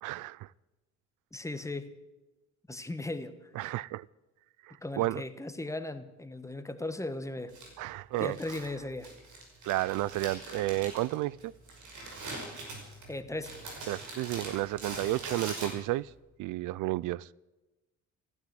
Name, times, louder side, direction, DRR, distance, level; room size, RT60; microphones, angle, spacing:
voice 1, 0.0-0.5 3.6-4.1 4.6-5.2 7.8-8.4 9.6-11.5 13.9-16.1 16.4-17.3, right 17 dB, 90° right, 0.5 m, -32 dB
voice 2, 1.3-1.9 2.7-3.5 4.8-7.5 8.2-9.1 13.1-13.5, left 2 dB, 10° left, 1.5 m, -37 dB
Crumpling crinkling, 7.5-16.1, right 2 dB, 75° right, 5.9 m, -43 dB
15.5 x 12.0 x 7.7 m
cardioid pair, 90°, 30 cm